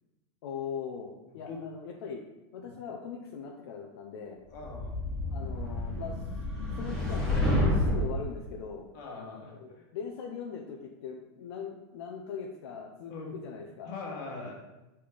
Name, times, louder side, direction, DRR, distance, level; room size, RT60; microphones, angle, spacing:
voice 1, 0.4-2.2 2.5-4.4 5.3-6.2 6.7-8.9 9.5-13.9, left 6 dB, 70° left, 1 dB, 0.8 m, -40 dB
voice 2, 1.3-1.6 2.6-2.7 4.5-4.9 8.9-9.8 13.1-13.4 13.8-14.6, left 4 dB, 45° left, -2 dB, 1.7 m, -41 dB
sound 1, 4.5-8.2, left 1 dB, 5° left, 1.3 m, -29 dB
5.4 x 4.4 x 5.0 m, 1.0 s
supercardioid pair, 170°, 14 cm